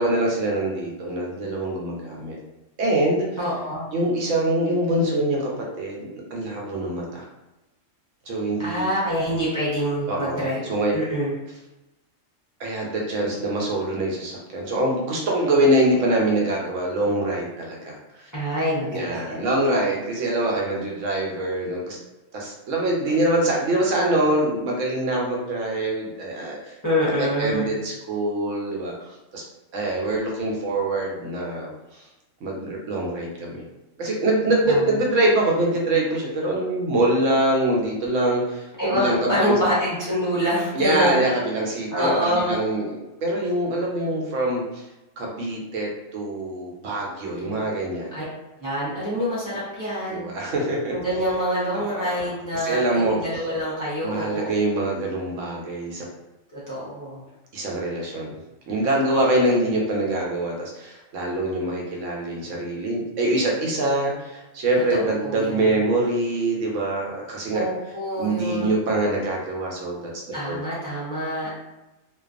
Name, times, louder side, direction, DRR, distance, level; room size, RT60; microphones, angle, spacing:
voice 1, 0.0-2.4 2.8-3.3 3.9-7.2 8.3-8.9 10.1-10.9 12.6-18.3 18.9-22.0 22.3-26.8 27.2-29.4 29.7-32.0 32.4-33.6 34.0-39.6 40.7-42.9 43.2-44.8 45.2-48.1 50.1-50.9 51.7-52.3 52.6-53.2 54.0-56.1 57.5-58.3 58.7-67.6 68.2-70.6, right 1 dB, 75° right, -2 dB, 1.0 m, -24 dB
voice 2, 3.4-3.8 8.6-11.3 18.3-19.4 26.8-27.7 34.7-34.8 38.8-41.2 41.9-42.6 47.4-47.6 48.1-48.2 48.6-50.2 50.9-54.6 56.5-57.2 64.9-65.6 67.5-68.7 70.3-71.5, equal, 25° left, -9 dB, 0.5 m, -26 dB
2.4 x 2.2 x 2.4 m, 1.0 s
omnidirectional pair, 1.3 m